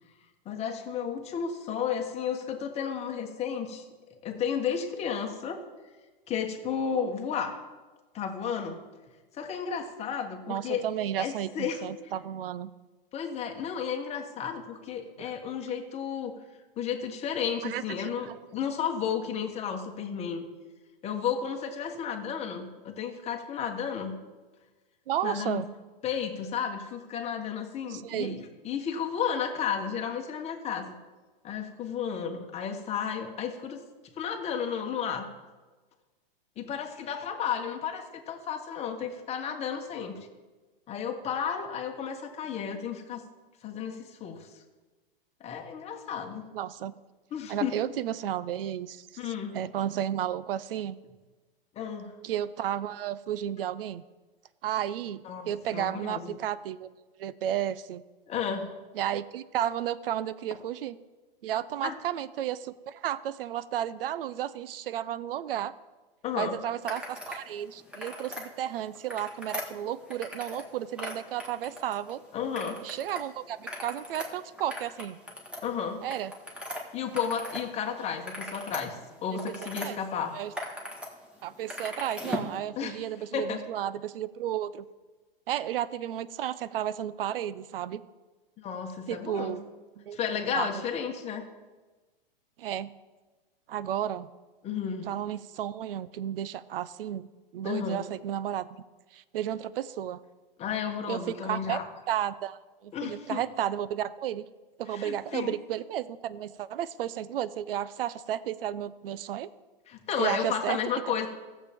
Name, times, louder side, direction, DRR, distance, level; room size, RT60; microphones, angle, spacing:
voice 1, 0.4-3.8 4.2-5.6 6.3-7.6 8.1-8.8 9.3-10.8 11.2-11.8 13.1-16.3 16.8-20.5 21.0-24.2 25.2-25.7 26.0-31.0 31.4-33.8 34.2-35.3 36.6-40.2 40.9-43.2 43.6-44.5 45.4-46.4 47.3-47.8 49.2-49.5 51.7-52.1 55.2-56.4 58.3-58.7 61.8-62.0 66.2-66.6 72.3-72.8 75.6-76.0 76.9-80.4 82.8-83.0 83.3-83.6 88.6-89.6 90.1-91.4 94.6-95.1 97.6-98.0 100.6-101.9 102.9-103.4 104.9-105.6 109.9-111.3, left 7 dB, 20° left, 4 dB, 1.2 m, -33 dB
voice 2, 10.5-12.7 15.2-15.3 17.6-18.3 25.1-25.7 27.9-28.4 46.5-47.0 47.5-51.0 52.2-54.0 54.6-56.9 57.2-58.0 58.9-61.0 61.4-65.7 66.4-72.2 72.8-75.2 76.0-76.3 79.3-80.0 80.3-80.5 81.4-84.8 85.5-88.0 89.1-89.6 90.0-90.2 90.5-90.8 92.6-92.9 93.7-94.3 95.1-98.7 99.1-100.2 101.1-101.8 102.1-104.5 104.8-109.5 110.2-110.8, right 11 dB, 70° right, 17 dB, 0.6 m, -33 dB
sound 1, 66.8-67.4 67.8-68.5 68.9-70.7 70.9-72.1 72.5-73.2 73.5-77.7 78.0-79.9 80.3-81.1 81.4-82.5, left 1 dB, 5° right, 1.4 m, -39 dB
15.5 x 7.3 x 3.5 m, 1.3 s
hypercardioid pair, 135°, 30 cm